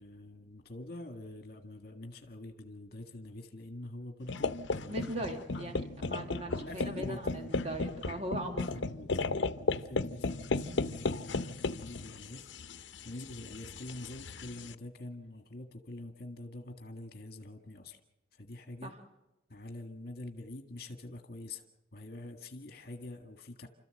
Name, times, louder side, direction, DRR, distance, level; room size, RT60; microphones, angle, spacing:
voice 1, 0.0-5.3 6.6-7.6 8.7-18.0 18.3-18.9 19.5-21.6 21.9-23.7, left 1 dB, 55° left, 5 dB, 1.7 m, -46 dB
sound 1, 4.3-14.7, left 3 dB, 75° left, 0.8 m, -35 dB
voice 2, 4.9-8.8 18.8-19.0, right 1 dB, 35° right, 3 dB, 2.3 m, -39 dB
30.0 x 13.5 x 7.8 m, 0.98 s
head